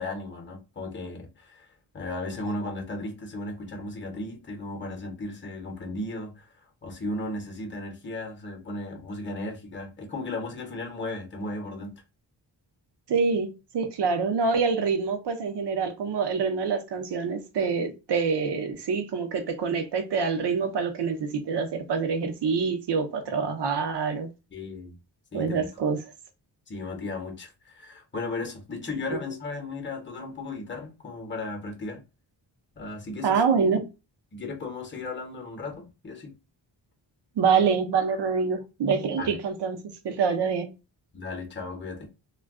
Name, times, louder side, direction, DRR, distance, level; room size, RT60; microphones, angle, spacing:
voice 1, 0.0-1.7 1.9-6.5 6.8-11.9 24.5-25.0 25.3-25.7 26.7-32.0 32.8-33.4 34.3-36.3 39.2-39.4 41.1-42.1, left 2 dB, 25° left, 0.8 m, -35 dB
voice 2, 13.1-13.5 13.7-24.3 25.3-26.0 29.1-29.2 33.2-33.9 37.4-40.7, right 5 dB, 65° right, 0.7 m, -26 dB
2.3 x 2.2 x 3.4 m
wide cardioid pair, 105°, 45 cm